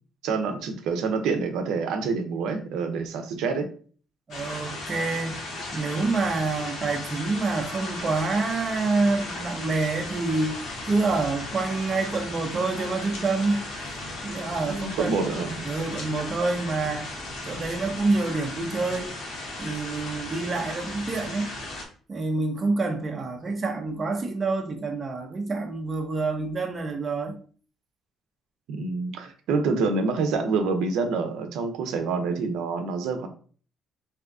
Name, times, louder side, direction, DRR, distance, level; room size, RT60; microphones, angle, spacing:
voice 1, 0.2-3.7 14.6-15.6 28.7-33.3, right 4 dB, 85° right, 0.5 m, -27 dB
sound 1, 4.3-21.9, left 2 dB, 60° left, 0.9 m, -36 dB
voice 2, 4.3-5.4 5.7-10.6 10.9-13.6 14.2-15.4 15.6-17.1 17.5-19.1 19.6-21.5 22.1-27.3, right 3 dB, 25° right, 0.4 m, -27 dB
3.4 x 2.7 x 2.5 m
cardioid pair, 165°, 0 cm